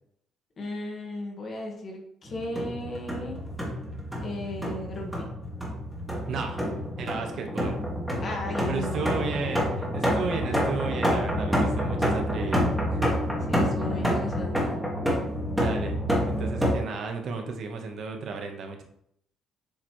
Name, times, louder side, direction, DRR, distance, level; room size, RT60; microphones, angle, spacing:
voice 1, 0.6-3.4 4.2-5.3 8.2-9.3 13.5-14.8, left 1 dB, 35° left, 1 dB, 1.2 m, -35 dB
sound 1, 2.3-16.7, equal, ahead, 1.2 m, -28 dB
voice 2, 6.3-6.6 7.0-7.8 8.7-13.1 15.6-18.8, right 5 dB, 55° right, 4 dB, 0.9 m, -34 dB
7.2 x 3.0 x 4.4 m, 0.71 s
cardioid pair, 165°, 0 cm